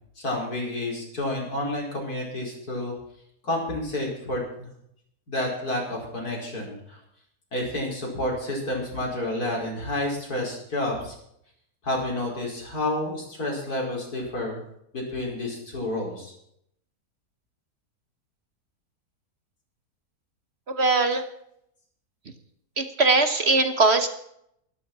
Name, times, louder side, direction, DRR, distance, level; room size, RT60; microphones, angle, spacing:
voice 1, 0.2-2.9 3.4-4.7 5.3-7.0 7.5-11.1 11.8-14.6 14.9-16.3, left 1 dB, 75° left, -2 dB, 5.4 m, -30 dB
voice 2, 20.7-21.2 22.8-24.1, right 3 dB, 45° right, 9 dB, 1.2 m, -20 dB
13.0 x 13.0 x 6.0 m, 0.72 s
omnidirectional pair, 1.6 m